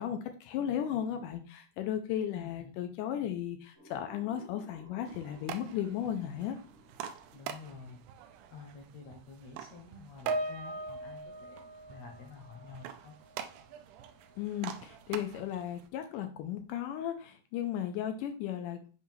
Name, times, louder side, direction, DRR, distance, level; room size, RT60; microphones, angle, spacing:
voice 1, 0.0-6.6 14.4-18.9, left 10 dB, 90° left, 6 dB, 1.9 m, -35 dB
voice 2, 2.3-2.7 7.3-8.0 8.5-13.2, left 5 dB, 70° left, 2 dB, 1.7 m, -49 dB
sound 1, 3.7-8.5, equal, 50° right, 0.9 m, -57 dB
sound 2, 5.0-15.9, right 9 dB, 90° right, 1.8 m, -47 dB
Piano, 10.3-12.9 13.2-13.5 14.3-14.4, right 2 dB, 75° right, 2.2 m, -38 dB
7.6 x 2.7 x 5.4 m, 0.37 s
omnidirectional pair, 4.3 m